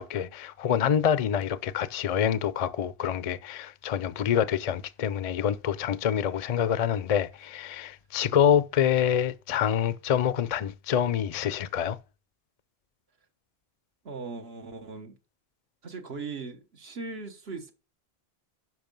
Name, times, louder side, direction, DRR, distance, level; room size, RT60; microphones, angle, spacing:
voice 1, 0.0-12.0, left 9 dB, 45° left, 0.5 m, -26 dB
voice 2, 14.0-15.2 15.8-17.7, right 4 dB, 75° right, 1.4 m, -39 dB
11.0 x 5.3 x 5.3 m
omnidirectional pair, 1.1 m